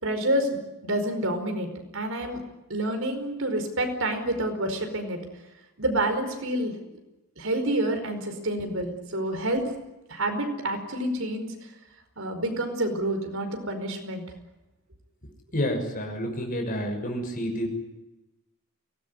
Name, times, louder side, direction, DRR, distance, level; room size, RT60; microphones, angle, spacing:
voice 1, 0.0-0.5 0.8-1.7 1.9-2.4 2.7-5.2 5.8-6.8 7.4-9.6 10.1-11.5 12.2-14.2, right 1 dB, 65° right, 6 dB, 5.0 m, -28 dB
voice 2, 15.5-17.7, equal, 40° left, 4 dB, 6.4 m, -29 dB
23.5 x 19.0 x 9.8 m, 1.0 s
head